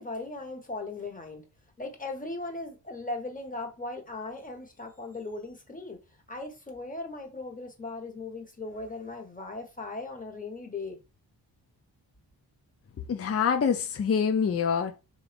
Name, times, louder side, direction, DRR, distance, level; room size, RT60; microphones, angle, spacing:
voice 1, 0.0-1.4 1.8-6.0 6.3-11.0, left 2 dB, 20° left, 1.3 m, -38 dB
voice 2, 13.1-15.0, left 6 dB, 35° left, 0.5 m, -25 dB
3.8 x 2.7 x 3.4 m
cardioid pair, 60°, 44 cm